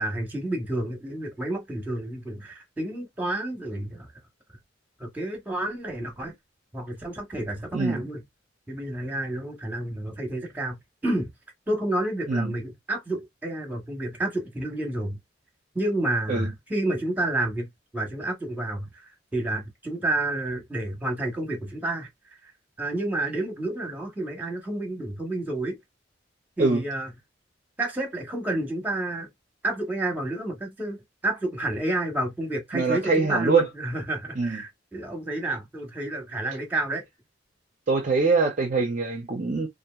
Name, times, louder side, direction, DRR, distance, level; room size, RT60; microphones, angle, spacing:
voice 1, 0.0-4.1 5.0-6.3 6.7-8.2 8.7-11.3 11.7-15.2 15.7-17.7 17.9-22.1 22.4-22.5 22.8-25.8 26.6-27.1 27.8-29.3 29.6-37.1, right 1 dB, 10° right, 1.0 m, -30 dB
voice 2, 32.7-33.7 34.4-34.6 37.9-39.7, right 4 dB, 40° right, 0.5 m, -23 dB
2.8 x 2.5 x 2.3 m
head